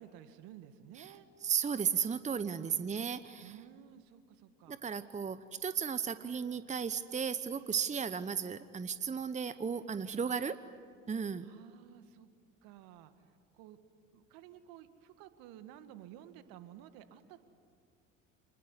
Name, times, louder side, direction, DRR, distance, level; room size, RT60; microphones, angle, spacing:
voice 1, 0.0-1.3 2.5-2.8 3.4-4.8 10.3-10.4 11.4-12.3 12.6-13.1 13.5-13.8 14.1-17.4, right 11 dB, 65° right, 10 dB, 2.0 m, -53 dB
voice 2, 1.4-3.5 4.7-10.6 11.1-11.5, right 7 dB, 20° right, 13 dB, 1.0 m, -35 dB
27.5 x 21.0 x 9.9 m, 2.1 s
hypercardioid pair, 70°, 38 cm